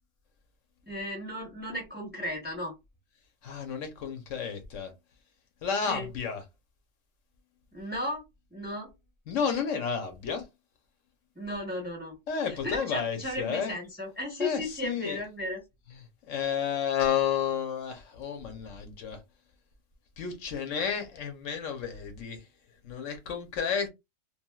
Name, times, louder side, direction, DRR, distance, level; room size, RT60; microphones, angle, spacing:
voice 1, 0.8-2.7 5.8-6.1 7.7-8.2 8.5-8.9 11.3-12.2 12.4-15.6, left 1 dB, 10° right, 0.8 m, -35 dB
voice 2, 3.4-4.9 5.6-6.4 9.3-10.4 12.3-13.7 14.4-15.2 16.3-19.2 20.2-22.4 22.8-23.9, left 7 dB, 75° left, 1.1 m, -31 dB
3.1 x 2.5 x 2.2 m
omnidirectional pair, 1.4 m